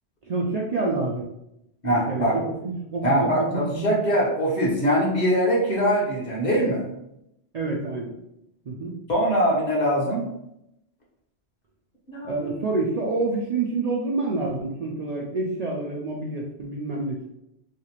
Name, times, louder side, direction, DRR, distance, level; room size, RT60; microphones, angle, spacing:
voice 1, 0.2-1.3 2.1-3.9 7.5-8.1 8.7-9.0 12.2-17.3, right 3 dB, 90° right, -2 dB, 0.3 m, -28 dB
voice 2, 1.8-2.4 3.0-6.8 9.1-10.2 12.1-12.5, equal, 40° left, -4 dB, 1.0 m, -22 dB
3.2 x 2.8 x 2.9 m, 0.82 s
omnidirectional pair, 1.2 m